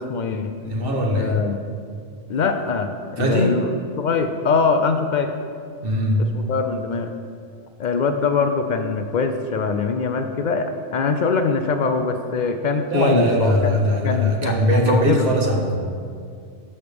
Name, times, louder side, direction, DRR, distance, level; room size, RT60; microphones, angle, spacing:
voice 1, 0.0-0.6 1.1-1.6 2.3-3.7 4.0-5.3 6.2-7.1 7.8-13.8 14.0-15.3, left 4 dB, 85° left, 7 dB, 0.4 m, -23 dB
voice 2, 0.6-1.4 3.2-3.6 5.8-6.2 12.9-15.8, equal, 45° right, 0 dB, 1.2 m, -20 dB
12.5 x 6.7 x 3.4 m, 2.2 s
omnidirectional pair, 1.4 m